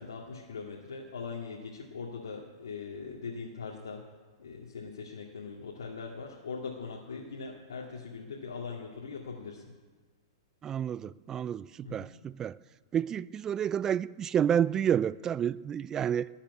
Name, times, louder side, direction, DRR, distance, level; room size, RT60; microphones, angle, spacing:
voice 1, 0.0-4.1 4.4-9.7 11.8-12.1, left 5 dB, 75° left, -2 dB, 2.2 m, -41 dB
voice 2, 10.6-12.6 12.9-16.3, right 9 dB, 25° right, 19 dB, 0.5 m, -29 dB
19.0 x 7.3 x 9.5 m, 1.4 s
hypercardioid pair, 105°, 2 cm